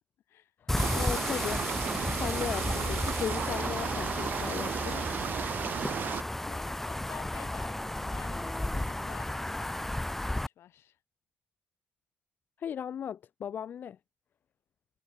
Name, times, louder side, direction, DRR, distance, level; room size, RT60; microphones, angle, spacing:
voice 1, 0.6-5.0 12.6-14.0, left 8 dB, 50° left, 0.5 m, -37 dB
sound 1, 0.7-10.5, left 1 dB, 5° left, 0.7 m, -33 dB
sound 2, 0.8-6.2, right 8 dB, 50° right, 0.5 m, -34 dB
voice 2, 5.6-9.8 10.3-11.0, left 12 dB, 75° left, 7.0 m, -50 dB
cardioid pair, 145°, 4 cm